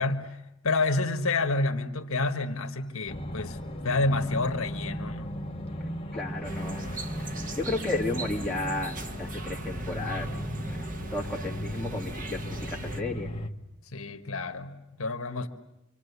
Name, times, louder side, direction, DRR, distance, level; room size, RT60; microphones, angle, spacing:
voice 1, 0.0-3.6 3.8-5.3 13.9-15.5, left 3 dB, 70° left, 5 dB, 1.6 m, -29 dB
sound 1, 3.1-13.5, equal, 25° left, 1.5 m, -36 dB
voice 2, 6.1-6.8 7.6-13.3, left 2 dB, 5° left, -3 dB, 2.6 m, -33 dB
sound 2, 6.4-13.0, right 2 dB, 40° right, 1.6 m, -39 dB
27.0 x 25.5 x 8.4 m, 0.89 s
head